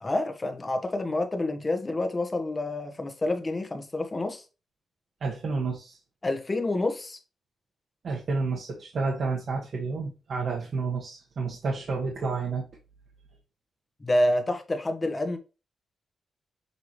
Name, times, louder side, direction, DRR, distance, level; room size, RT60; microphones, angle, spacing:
voice 1, 0.0-4.4 6.2-7.2 14.0-15.4, left 1 dB, 25° left, 1.3 m, -28 dB
voice 2, 5.2-6.0 8.0-12.7, right 4 dB, 60° right, 1.3 m, -30 dB
6.8 x 4.8 x 3.1 m
cardioid pair, 110°, 0 cm